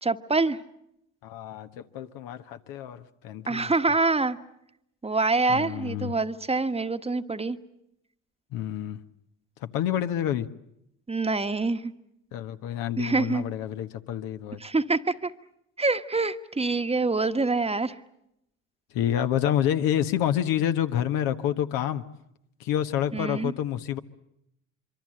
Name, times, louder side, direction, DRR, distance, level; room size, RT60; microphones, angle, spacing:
voice 1, 0.0-0.6 3.5-4.4 5.0-7.6 11.1-11.9 13.0-13.4 14.6-15.3 15.8-18.0 23.1-23.5, right 3 dB, 15° right, 9 dB, 1.3 m, -25 dB
voice 2, 1.2-3.7 5.5-6.1 8.5-9.0 9.6-10.5 12.3-14.6 18.9-22.0 22.6-24.0, left 10 dB, 70° left, 8 dB, 1.3 m, -28 dB
25.5 x 24.0 x 7.7 m, 0.79 s
hypercardioid pair, 65°, 36 cm